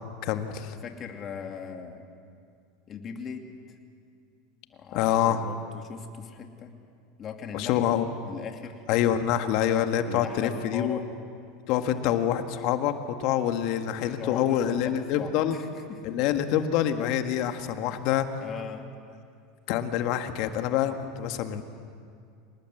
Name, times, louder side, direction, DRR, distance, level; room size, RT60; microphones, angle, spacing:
voice 1, 0.2-0.7 4.9-5.4 7.5-8.1 8.9-11.0 11.7-15.6 16.0-18.3 19.7-21.6, left 10 dB, 60° left, 7 dB, 1.8 m, -26 dB
voice 2, 0.8-2.1 2.9-3.5 4.7-6.7 7.2-7.8 8.2-8.8 10.0-11.1 13.9-16.0 17.5-17.7 18.4-18.9, left 6 dB, 40° left, 4 dB, 2.6 m, -39 dB
26.0 x 20.0 x 7.9 m, 2.4 s
hypercardioid pair, 100°, 0 cm